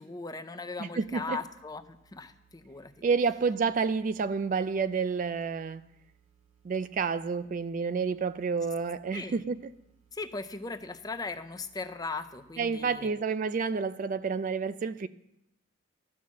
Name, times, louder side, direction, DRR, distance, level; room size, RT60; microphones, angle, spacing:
voice 1, 0.0-2.9 9.1-9.4 10.1-13.2, left 3 dB, 20° left, 0.5 m, -38 dB
voice 2, 0.8-1.4 3.0-5.8 6.6-9.6 12.6-15.1, right 5 dB, 40° right, 0.3 m, -29 dB
sound 1, 1.0-12.9, right 8 dB, 80° right, 1.4 m, -66 dB
13.0 x 5.9 x 7.3 m
head